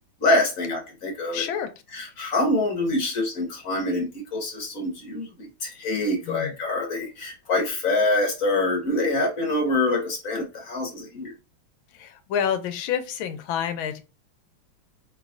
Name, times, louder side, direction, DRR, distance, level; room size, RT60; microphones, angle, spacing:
voice 1, 0.2-1.4 1.9-11.3, left 2 dB, 50° left, 1.2 m, -25 dB
voice 2, 1.3-1.7 6.2-6.5 11.9-14.0, left 8 dB, 75° left, 1.4 m, -28 dB
5.0 x 3.0 x 2.5 m
omnidirectional pair, 2.3 m